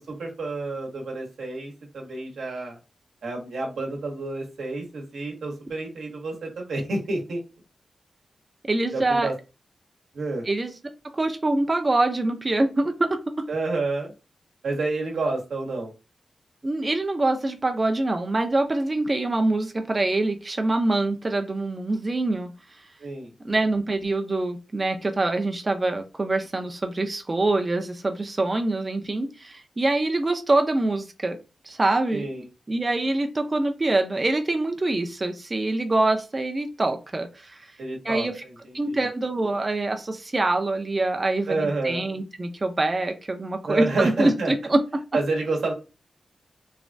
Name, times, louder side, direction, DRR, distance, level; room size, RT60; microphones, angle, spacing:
voice 1, 0.1-2.8 3.2-7.4 8.9-9.3 10.1-10.5 13.5-14.1 14.6-15.9 23.0-23.3 32.1-32.4 37.8-38.5 38.9-39.0 41.5-42.0 43.7-44.5 45.1-45.7, right 3 dB, 90° right, 0 dB, 0.9 m, -29 dB
voice 2, 8.7-9.3 10.4-10.7 11.1-13.2 16.6-22.5 23.4-31.4 31.6-37.7 38.0-38.4 38.7-44.8, right 2 dB, 30° right, 5 dB, 0.4 m, -25 dB
3.1 x 2.2 x 2.5 m, 0.30 s
wide cardioid pair, 95°, 0 cm